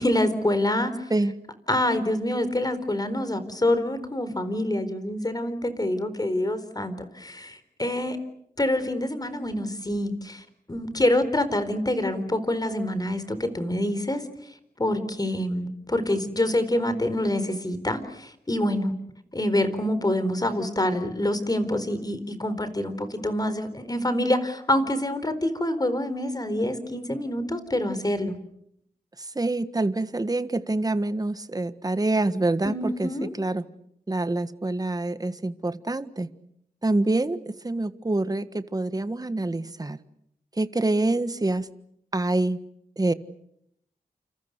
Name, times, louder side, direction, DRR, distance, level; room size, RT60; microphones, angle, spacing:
voice 1, 0.0-1.1 1.7-8.2 8.6-14.2 14.8-18.9 19.3-28.3 32.6-33.3, left 1 dB, 25° left, 11 dB, 4.3 m, -26 dB
voice 2, 29.2-33.7 34.1-36.3 36.8-40.0 40.6-41.7 42.1-42.6 43.0-43.1, right 2 dB, 25° right, 12 dB, 1.5 m, -26 dB
29.0 x 28.5 x 6.7 m, 0.73 s
wide cardioid pair, 75°, 15 cm